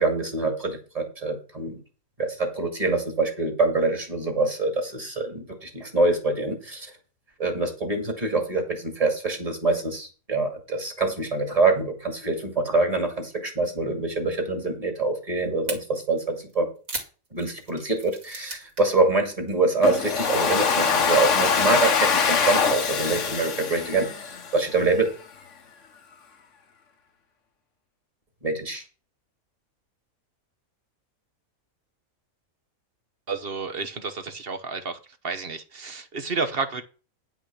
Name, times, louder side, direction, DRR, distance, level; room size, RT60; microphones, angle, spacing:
voice 1, 0.0-1.8 2.2-6.9 7.4-16.7 17.3-25.1 28.4-28.8, right 3 dB, 25° right, 3 dB, 2.4 m, -25 dB
sound 1, 15.7-15.8 16.5-19.0 19.2-19.5 19.9-21.1, right 3 dB, 70° right, 2.9 m, -37 dB
Domestic sounds home sounds, 19.8-24.8, left 6 dB, 60° left, 1.4 m, -23 dB
voice 2, 33.3-35.0 35.2-36.8, right 4 dB, 45° right, 9 dB, 1.1 m, -31 dB
10.0 x 5.9 x 6.0 m, 0.36 s
omnidirectional pair, 1.5 m